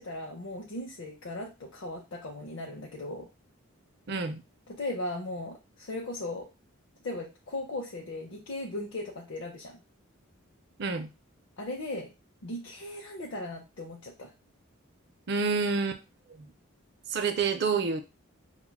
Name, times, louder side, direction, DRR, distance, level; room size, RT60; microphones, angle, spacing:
voice 1, 0.0-3.3 4.7-6.5 7.0-9.8 11.6-12.1 12.4-14.3, left 2 dB, 60° left, -1 dB, 0.6 m, -37 dB
voice 2, 4.1-4.4 10.8-11.1 15.3-16.0 16.3-16.5 17.1-18.0, right 4 dB, 50° right, 8 dB, 0.5 m, -28 dB
5.7 x 2.2 x 2.2 m, 0.27 s
head